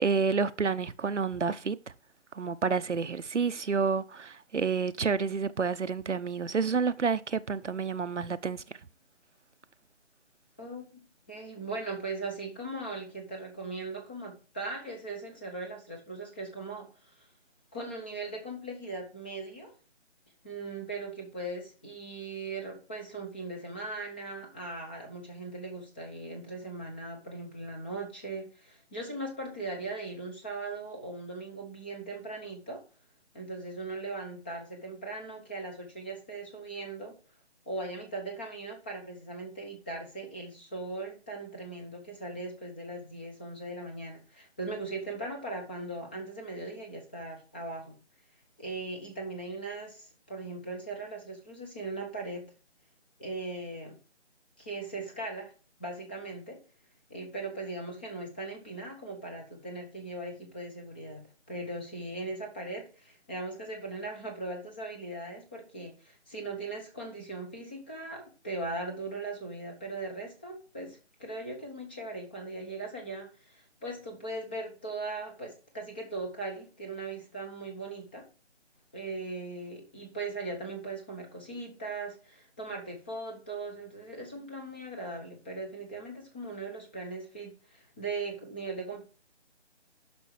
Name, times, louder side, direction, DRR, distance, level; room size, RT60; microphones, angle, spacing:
voice 1, 0.0-1.8 2.3-8.6, right 5 dB, 80° right, 0.8 m, -29 dB
voice 2, 10.6-11.0 11.3-17.3 17.7-19.7 20.4-32.8 33.3-37.1 37.7-48.0 48.6-52.4 53.2-53.9 54.6-55.5 55.8-56.6 57.1-78.3 78.9-89.0, right 2 dB, 10° left, 0.8 m, -39 dB
10.5 x 6.2 x 4.6 m
figure-of-eight pair, 155°, 35 cm